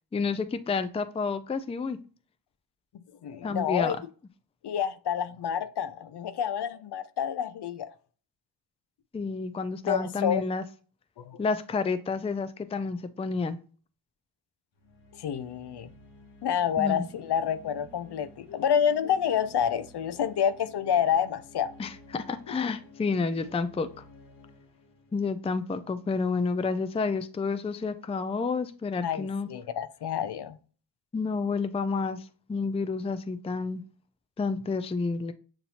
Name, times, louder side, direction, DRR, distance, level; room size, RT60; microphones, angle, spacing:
voice 1, 0.1-2.0 3.4-4.0 9.1-10.6 11.4-13.6 16.8-17.0 21.8-23.9 25.1-29.5 31.1-33.8 34.4-35.3, left 4 dB, 15° left, 0.4 m, -30 dB
voice 2, 2.9-4.0 4.6-7.9 9.8-10.4 11.2-11.4 15.1-15.9 16.4-21.7 29.0-30.6, left 8 dB, 60° left, 0.6 m, -28 dB
sound 1, 14.7-26.3, left 2 dB, 75° left, 1.3 m, -53 dB
7.0 x 2.6 x 2.9 m
cardioid pair, 50°, 46 cm